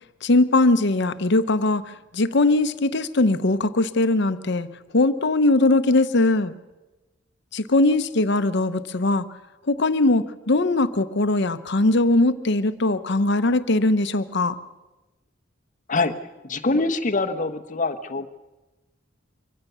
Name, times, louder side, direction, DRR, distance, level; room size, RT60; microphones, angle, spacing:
voice 1, 0.2-1.8 2.1-4.7 4.9-6.5 7.5-9.2 9.7-14.6, left 2 dB, 60° left, 12 dB, 0.9 m, -20 dB
voice 2, 16.4-18.3, left 3 dB, 40° left, 6 dB, 1.1 m, -24 dB
24.0 x 16.5 x 6.9 m, 1.1 s
head